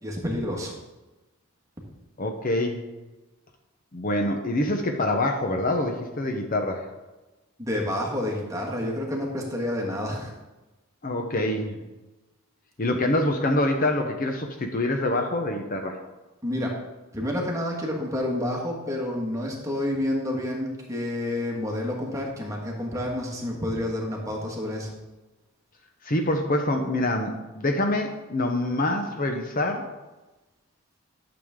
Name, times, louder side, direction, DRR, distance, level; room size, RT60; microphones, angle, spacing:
voice 1, 0.0-0.7 7.6-10.4 16.4-16.8 17.1-24.9, left 1 dB, 15° right, -1 dB, 1.7 m, -29 dB
voice 2, 2.2-2.8 3.9-6.9 11.0-11.8 12.8-16.0 26.0-29.9, left 1 dB, 40° left, 4 dB, 0.8 m, -25 dB
12.0 x 7.0 x 3.7 m, 1.1 s
head